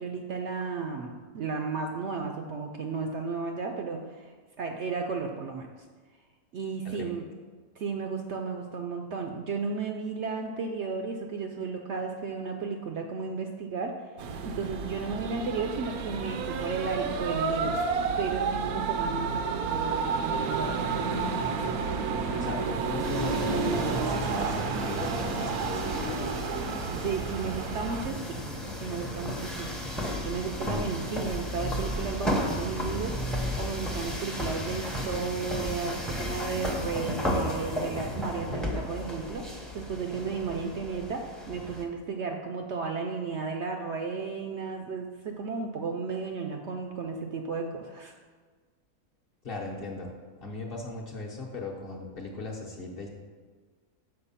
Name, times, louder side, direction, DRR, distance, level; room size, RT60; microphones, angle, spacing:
voice 1, 0.0-5.7 6.5-7.2 7.8-13.9 14.4-17.8 18.2-20.8 26.9-28.4 28.8-29.7 30.2-39.4 39.7-48.1, right 5 dB, 65° right, 3 dB, 0.7 m, -34 dB
sound 1, 14.2-28.1, right 4 dB, 80° right, 1.1 m, -30 dB
voice 2, 22.0-26.2 49.4-50.1 50.4-53.1, left 3 dB, 45° left, -1 dB, 1.0 m, -38 dB
sound 2, 23.0-41.8, left 1 dB, ahead, 0.6 m, -34 dB
6.7 x 4.6 x 5.6 m, 1.5 s
omnidirectional pair, 1.6 m